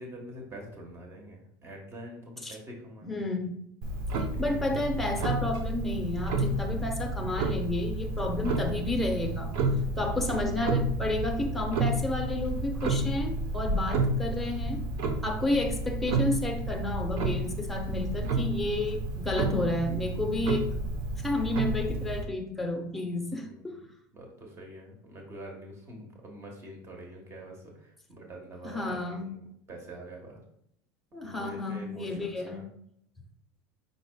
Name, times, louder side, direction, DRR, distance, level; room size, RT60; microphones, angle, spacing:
voice 1, 0.0-3.2 4.4-4.5 23.3-23.7 24.1-30.4 31.2-32.7, right 1 dB, 30° right, 1 dB, 1.3 m, -45 dB
voice 2, 3.0-3.6 4.4-9.5 10.0-14.8 15.2-20.7 21.2-23.8 28.6-29.3 31.1-32.6, left 2 dB, ahead, 3 dB, 0.7 m, -31 dB
Clock, 3.8-22.2, right 2 dB, 65° right, 0.8 m, -31 dB
5.4 x 4.1 x 2.2 m, 0.72 s
supercardioid pair, 130°, 10 cm